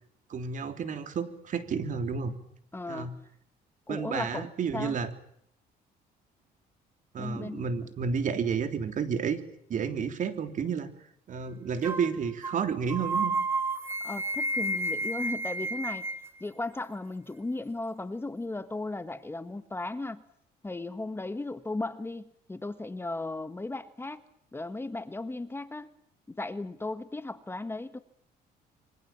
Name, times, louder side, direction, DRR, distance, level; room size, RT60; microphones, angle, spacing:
voice 1, 0.3-2.3 2.9-3.2 3.9-5.1 7.1-9.4 9.7-10.9 11.3-13.3, right 6 dB, 50° right, 8 dB, 3.4 m, -31 dB
voice 2, 2.7-3.1 3.9-5.0 7.2-7.8 14.0-16.0 16.4-20.2 20.6-24.2 24.5-25.9 26.3-28.0, left 2 dB, 15° left, 11 dB, 1.5 m, -36 dB
sound 1, 11.8-12.1 12.4-12.6 12.9-16.3, right 2 dB, 15° right, 2.0 m, -31 dB
26.5 x 24.5 x 7.5 m, 0.71 s
cardioid pair, 110°, 17 cm